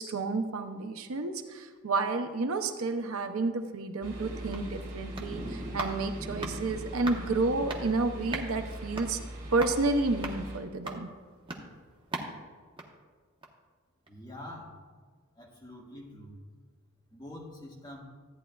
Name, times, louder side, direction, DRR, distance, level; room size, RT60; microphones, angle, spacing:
voice 1, 0.0-9.2 9.5-11.1, right 3 dB, 65° right, 7 dB, 0.6 m, -30 dB
sound 1, 4.0-10.6, right 1 dB, 45° right, 2.6 m, -40 dB
sound 2, 4.5-13.7 14.0-14.1, right 2 dB, 25° right, 0.9 m, -42 dB
voice 2, 14.1-14.8 15.4-16.4 17.1-18.0, left 1 dB, 20° left, -3 dB, 1.7 m, -45 dB
14.0 x 9.3 x 2.3 m, 1.5 s
head